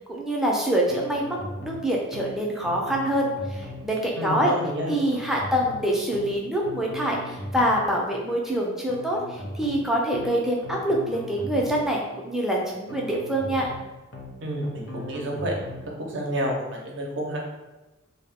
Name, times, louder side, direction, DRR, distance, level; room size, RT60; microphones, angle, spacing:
voice 1, 0.1-4.5 4.9-13.7, right 1 dB, ahead, -2 dB, 0.4 m, -25 dB
sound 1, 0.9-1.8 2.1-2.3 2.6-3.9 4.9-5.8 6.1-6.3 6.6-7.9 8.9-9.8 10.1-10.3 10.6-11.9 12.9-13.8 14.1-14.3 14.6-15.9, equal, 75° left, 0.7 m, -38 dB
voice 2, 4.2-4.9 14.4-15.5 16.0-17.4, equal, 65° right, 0 dB, 0.6 m, -29 dB
2.1 x 2.0 x 3.5 m, 1.1 s
head